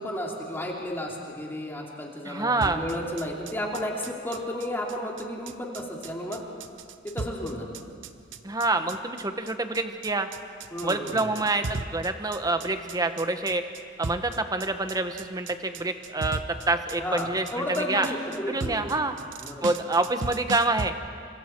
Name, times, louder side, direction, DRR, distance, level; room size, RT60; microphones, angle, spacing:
voice 1, 0.0-6.4 7.0-7.7 10.7-11.3 17.0-18.9 19.4-19.7, left 1 dB, 10° left, -2 dB, 2.8 m, -33 dB
voice 2, 2.2-2.8 8.4-10.3 10.8-13.6 14.0-16.4 16.7-18.1 18.5-19.1 19.6-20.9, right 2 dB, 20° right, 8 dB, 1.1 m, -27 dB
sound 1, 2.6-20.9, right 3 dB, 75° right, 0.8 m, -37 dB
29.0 x 24.5 x 4.6 m, 2.2 s
head